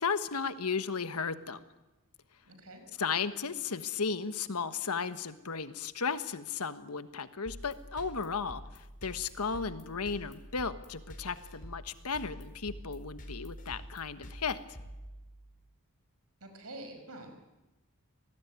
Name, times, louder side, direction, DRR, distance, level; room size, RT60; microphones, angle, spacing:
voice 1, 0.0-1.6 3.0-14.6, left 5 dB, 80° left, 11 dB, 1.4 m, -35 dB
voice 2, 2.5-2.8 16.4-17.4, right 1 dB, 75° right, 6 dB, 5.5 m, -46 dB
sound 1, 7.4-15.6, equal, 40° left, 4.7 m, -47 dB
25.0 x 19.0 x 9.5 m, 1.0 s
head